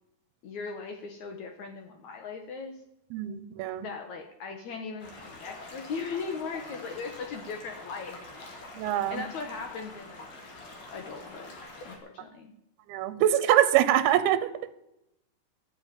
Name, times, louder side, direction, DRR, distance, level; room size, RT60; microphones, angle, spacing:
voice 1, 0.4-2.8 3.8-8.7 9.1-10.3 10.9-11.5 11.8-12.5, left 5 dB, 70° left, 4 dB, 1.9 m, -38 dB
voice 2, 3.1-3.9 8.8-9.2 12.9-14.7, right 12 dB, 85° right, 13 dB, 2.8 m, -24 dB
sound 1, 5.0-12.0, left 2 dB, 45° left, 3.0 m, -46 dB
13.0 x 7.1 x 9.0 m, 0.84 s
omnidirectional pair, 4.5 m